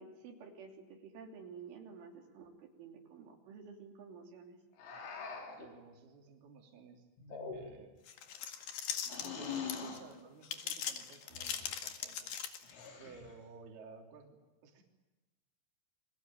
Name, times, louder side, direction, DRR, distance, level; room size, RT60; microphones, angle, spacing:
voice 1, 0.0-4.6, right 5 dB, 80° right, 2 dB, 5.6 m, -51 dB
sound 1, 4.8-5.7 7.2-7.9 9.1-10.0 11.3-11.7 12.6-13.4, left 5 dB, 85° left, 6.5 m, -43 dB
voice 2, 5.6-7.9 9.2-12.4 13.0-14.8, right 5 dB, 55° right, 2 dB, 5.1 m, -55 dB
sound 2, 8.1-10.0 10.4-12.9, left 8 dB, 55° left, 3.2 m, -40 dB
29.0 x 22.0 x 9.0 m, 1.1 s
omnidirectional pair, 5.5 m